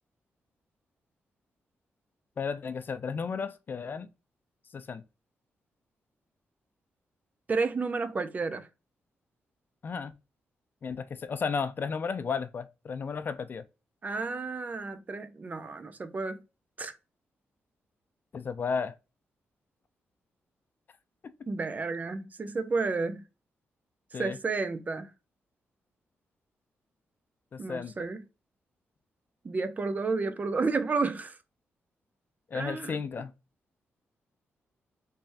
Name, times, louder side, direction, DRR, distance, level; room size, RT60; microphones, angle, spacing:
voice 1, 2.4-4.1 4.7-5.0 9.8-10.1 10.8-13.6 18.3-19.0 24.1-24.4 27.5-27.9 32.5-33.3, left 5 dB, 45° left, 0.4 m, -33 dB
voice 2, 7.5-8.7 14.0-16.4 16.8-16.9 21.5-23.2 24.1-25.1 27.6-28.2 29.4-31.4 32.5-33.0, right 4 dB, 35° right, 0.5 m, -31 dB
3.3 x 3.2 x 2.5 m
cardioid pair, 100°, 5 cm